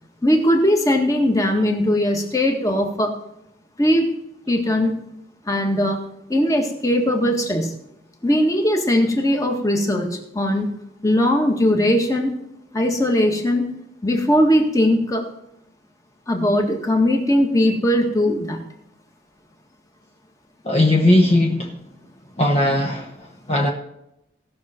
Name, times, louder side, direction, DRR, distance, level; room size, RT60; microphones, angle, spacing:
voice 1, 0.2-3.1 3.8-4.1 4.5-5.1 5.5-6.0 6.3-7.8 8.2-10.7 11.0-12.3 12.7-13.7 14.0-15.2 16.3-18.6, left 1 dB, 20° left, 3 dB, 1.7 m, -19 dB
voice 2, 20.6-21.7 22.4-23.7, left 1 dB, 35° left, 0 dB, 1.2 m, -18 dB
18.0 x 6.6 x 4.4 m, 0.84 s
head